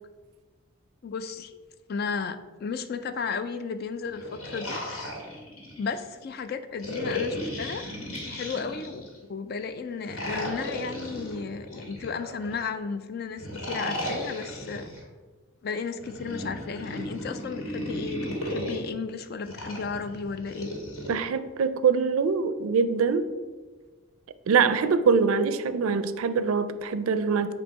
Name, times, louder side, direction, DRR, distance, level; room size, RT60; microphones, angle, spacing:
voice 1, 1.0-1.6 1.9-4.8 5.8-7.8 8.3-14.9 15.6-20.7, left 5 dB, 45° left, 10 dB, 0.3 m, -34 dB
sound 1, 4.1-6.0 6.8-9.2 10.0-12.6 13.4-15.0 16.0-18.8 19.5-21.1, left 1 dB, 90° left, 1.7 m, -35 dB
voice 2, 21.1-23.3 24.5-27.5, right 5 dB, 80° right, 12 dB, 0.4 m, -24 dB
8.0 x 2.7 x 4.6 m, 1.3 s
head